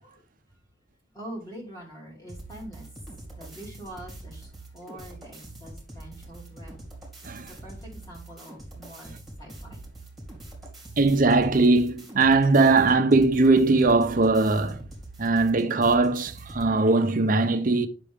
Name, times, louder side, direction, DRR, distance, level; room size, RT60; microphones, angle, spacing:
voice 1, 1.1-2.9 3.4-6.8 7.6-9.8, right 1 dB, 20° left, 2.9 m, -44 dB
sound 1, 2.3-16.7, right 2 dB, ahead, 2.3 m, -44 dB
voice 2, 11.0-14.8 15.2-17.9, right 3 dB, 45° right, 0.7 m, -20 dB
8.0 x 6.0 x 3.5 m
head